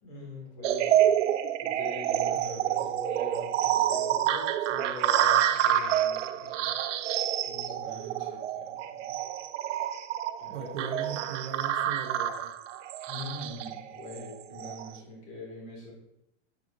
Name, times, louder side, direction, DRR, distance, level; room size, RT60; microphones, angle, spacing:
voice 1, 0.0-1.0 1.6-6.7 7.4-9.2 10.4-11.2 13.1-15.9, left 3 dB, 35° left, -3 dB, 3.0 m, -43 dB
sound 1, 0.6-14.9, right 11 dB, 80° right, 0.7 m, -28 dB
voice 2, 2.4-2.8 7.8-8.4 10.5-12.5, right 8 dB, 55° right, 2 dB, 0.9 m, -40 dB
8.5 x 7.9 x 3.0 m, 0.88 s
supercardioid pair, 170°, 36 cm